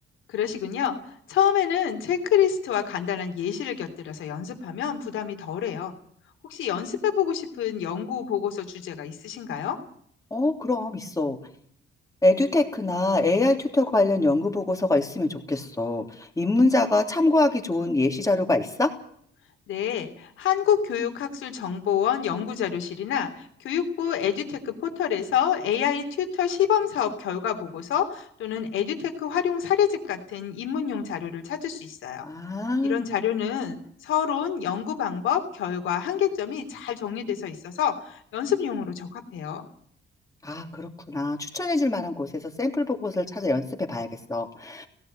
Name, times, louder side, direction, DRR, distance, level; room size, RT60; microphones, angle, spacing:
voice 1, 0.3-5.9 6.4-9.8 19.7-32.3 32.8-39.7, left 9 dB, 80° left, 6 dB, 3.3 m, -27 dB
voice 2, 10.3-11.4 12.2-18.9 32.2-33.0 40.4-44.9, left 2 dB, 15° left, 3 dB, 3.3 m, -24 dB
17.5 x 16.0 x 9.2 m, 0.65 s
cardioid pair, 90°, 20 cm